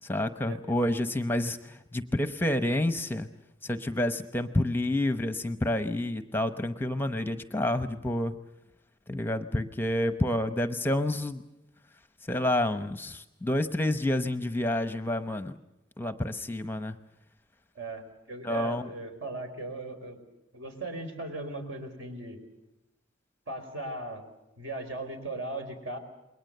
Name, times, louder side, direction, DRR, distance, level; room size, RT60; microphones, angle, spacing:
voice 1, 0.0-3.3 3.6-8.3 9.1-11.4 12.3-15.5 16.0-16.9 18.4-18.9, left 1 dB, 10° left, 10 dB, 0.8 m, -29 dB
voice 2, 17.7-20.2 20.5-22.4 23.5-24.2 24.6-26.0, right 2 dB, 60° right, 6 dB, 4.8 m, -38 dB
28.5 x 22.0 x 6.7 m, 0.90 s
head